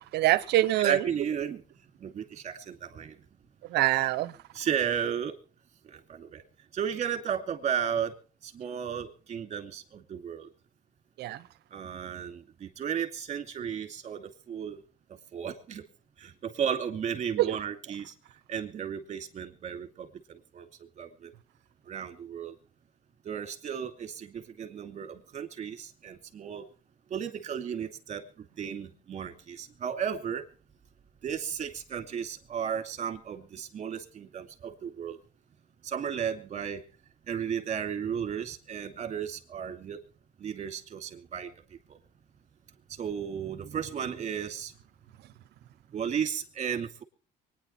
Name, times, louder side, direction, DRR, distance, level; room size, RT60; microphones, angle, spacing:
voice 1, 0.1-1.1 3.7-4.4 11.2-11.4 17.4-17.5, right 15 dB, 75° right, 17 dB, 0.9 m, -25 dB
voice 2, 0.8-1.6 2.0-3.1 4.5-5.4 6.1-6.4 6.7-8.1 8.4-10.5 11.7-14.8 15.3-15.8 16.2-18.1 18.5-20.1 20.5-20.7 21.0-21.3 21.9-22.5 23.2-26.6 27.1-30.4 31.2-35.2 35.8-36.8 37.3-40.0 40.4-41.5 43.0-44.7 45.9-47.0, right 8 dB, 45° right, 7 dB, 2.5 m, -34 dB
24.5 x 9.9 x 4.3 m, 0.39 s
cardioid pair, 110°, 17 cm